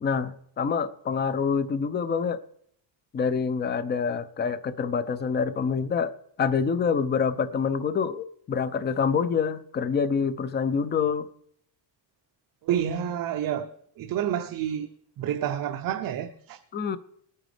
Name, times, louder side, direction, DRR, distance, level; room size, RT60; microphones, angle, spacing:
voice 1, 0.0-2.4 3.1-6.1 6.4-11.3 16.7-17.0, left 6 dB, 20° left, 0.5 m, -26 dB
voice 2, 12.6-13.7 14.0-14.9 15.2-16.6, right 10 dB, 45° right, 0.6 m, -29 dB
20.5 x 9.0 x 3.3 m
cardioid pair, 155°, 47 cm